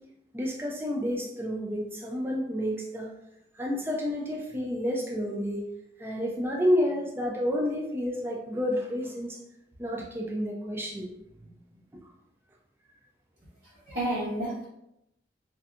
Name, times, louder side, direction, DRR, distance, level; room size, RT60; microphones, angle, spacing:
voice 1, 0.3-3.1 3.5-5.7 6.0-9.4 9.8-11.1 11.4-11.5, equal, 10° right, -1 dB, 0.3 m, -30 dB
voice 2, 13.6-14.6, right 1 dB, 85° right, -13 dB, 1.2 m, -31 dB
2.7 x 2.2 x 2.4 m, 0.81 s
head